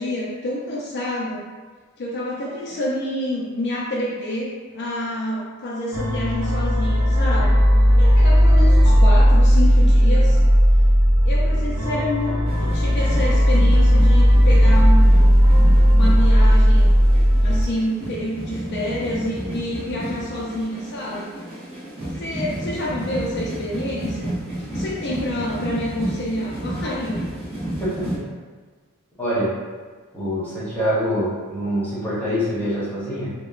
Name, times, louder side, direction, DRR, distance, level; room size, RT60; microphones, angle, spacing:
voice 1, 0.0-1.5 2.0-7.5 8.0-10.4 11.3-15.4 15.9-16.9 17.4-21.3 22.2-24.3 24.6-27.2, left 1 dB, 55° left, -5 dB, 0.4 m, -28 dB
sound 1, 5.9-17.6, equal, 90° right, 0.7 m, -15 dB
sound 2, 12.4-28.2, right 1 dB, 30° right, 0.8 m, -32 dB
voice 2, 27.8-28.3 29.2-29.6 30.1-33.3, equal, 10° left, -10 dB, 0.8 m, -25 dB
2.8 x 2.0 x 2.3 m, 1.4 s
head